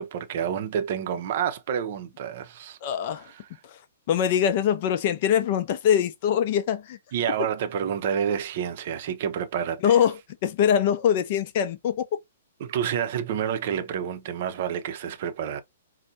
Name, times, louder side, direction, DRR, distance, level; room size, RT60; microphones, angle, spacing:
voice 1, 0.0-2.8 3.3-3.4 7.1-10.0 12.6-15.6, right 8 dB, 45° right, 0.6 m, -29 dB
voice 2, 2.8-3.3 3.6-3.8 4.1-7.0 9.8-12.2, left 9 dB, 45° left, 0.5 m, -23 dB
4.2 x 2.1 x 2.7 m
figure-of-eight pair, 115°, 0 cm